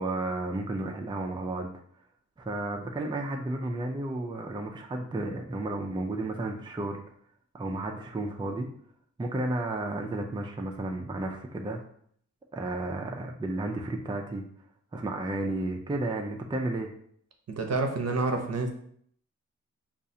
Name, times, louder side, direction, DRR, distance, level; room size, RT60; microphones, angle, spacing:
voice 1, 0.0-1.7 2.4-7.0 7.5-8.7 9.2-11.8 12.5-14.4 14.9-16.9, right 2 dB, 15° right, 2 dB, 0.4 m, -32 dB
voice 2, 17.5-18.7, right 3 dB, 60° right, 4 dB, 0.6 m, -28 dB
5.3 x 2.4 x 2.7 m, 0.64 s
wide cardioid pair, 105°, 29 cm